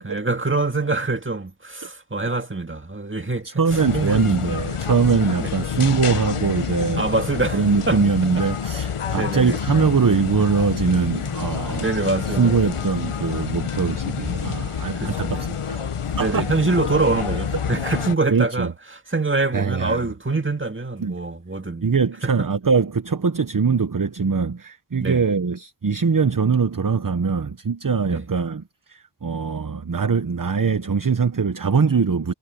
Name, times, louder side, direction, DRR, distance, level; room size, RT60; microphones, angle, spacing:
voice 1, 0.0-3.5 3.9-4.2 5.3-5.5 7.0-7.6 7.9-8.0 9.1-9.6 11.2-11.4 11.8-12.7 15.0-15.5 16.2-18.7 19.1-21.9 22.2-22.5 25.0-25.2 28.1-28.2, right 3 dB, 25° right, 2.1 m, -24 dB
voice 2, 3.1-7.1 7.5-11.9 12.3-15.9 16.2-16.4 18.3-18.7 19.5-20.1 21.0-21.1 21.8-32.3, right 5 dB, 40° right, 1.0 m, -22 dB
sound 1, 3.7-18.2, left 7 dB, 85° left, 1.1 m, -28 dB
wide cardioid pair, 60°, 50 cm